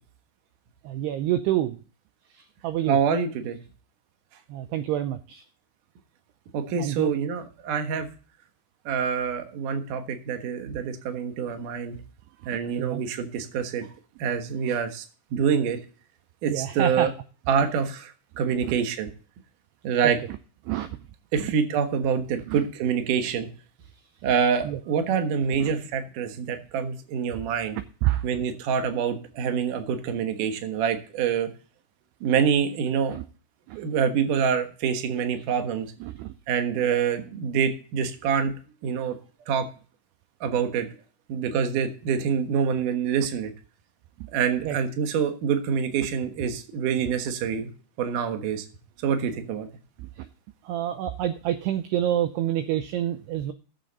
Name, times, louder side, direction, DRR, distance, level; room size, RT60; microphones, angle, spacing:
voice 1, 0.8-1.8 2.3-3.0 4.5-5.4 6.8-7.1 12.8-13.0 16.5-17.1 18.6-18.7 20.7-20.9 21.4-21.5 22.5-22.6 24.6-24.8 25.6-25.7 28.0-28.3 33.1-33.2 33.7-33.8 36.0-36.3 40.5-40.6 44.2-44.3 44.6-44.8 50.0-50.3 50.6-53.5, right 12 dB, 80° right, 11 dB, 2.4 m, -28 dB
voice 2, 2.9-3.6 6.5-8.1 8.9-12.0 12.5-13.9 14.2-15.0 15.3-15.8 16.4-17.1 17.5-19.1 19.8-20.2 21.3-23.5 24.2-27.8 28.2-31.5 32.2-33.2 33.8-35.9 36.5-38.5 38.8-39.2 39.5-39.7 40.4-40.9 41.3-43.5 44.3-47.7 48.0-48.7 49.0-49.7, right 7 dB, 65° right, 6 dB, 2.2 m, -26 dB
16.5 x 7.5 x 4.0 m, 0.39 s
omnidirectional pair, 5.3 m